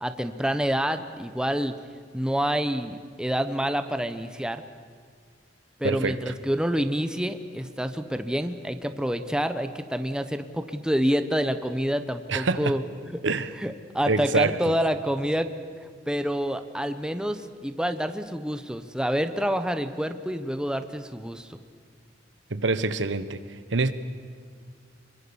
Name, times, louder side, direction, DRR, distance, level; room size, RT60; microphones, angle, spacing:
voice 1, 0.0-1.8 2.1-4.6 5.8-12.8 13.1-13.2 13.6-15.5 16.1-21.6, equal, 5° right, 9 dB, 0.9 m, -27 dB
voice 2, 5.8-6.3 12.3-12.8 13.2-13.5 14.1-14.6 22.5-23.4 23.7-23.9, right 3 dB, 80° right, 12 dB, 1.2 m, -25 dB
26.0 x 23.0 x 7.1 m, 2.1 s
head